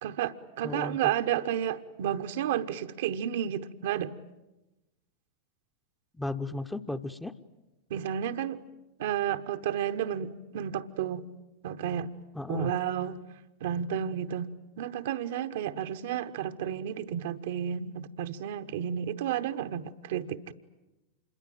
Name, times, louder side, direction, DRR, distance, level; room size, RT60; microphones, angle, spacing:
voice 1, 0.0-4.1 7.9-8.6 9.0-11.3 11.6-12.1 12.5-13.2 13.6-14.5 14.8-20.5, right 9 dB, 55° right, 8 dB, 1.0 m, -31 dB
voice 2, 0.6-1.1 6.2-7.3 12.3-12.7, left 2 dB, 5° left, 9 dB, 0.9 m, -35 dB
27.0 x 22.0 x 9.2 m, 1.0 s
figure-of-eight pair, 90°, 0 cm